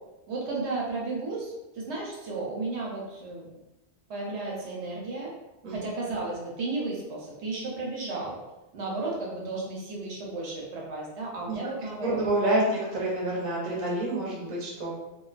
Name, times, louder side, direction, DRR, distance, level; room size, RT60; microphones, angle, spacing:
voice 1, 0.3-3.5 4.1-5.3 5.7-8.4 8.7-12.3, right 3 dB, 75° right, -3 dB, 0.9 m, -33 dB
voice 2, 12.0-14.9, right 1 dB, 35° right, -5 dB, 0.7 m, -28 dB
2.4 x 2.2 x 2.3 m, 0.99 s
omnidirectional pair, 1.2 m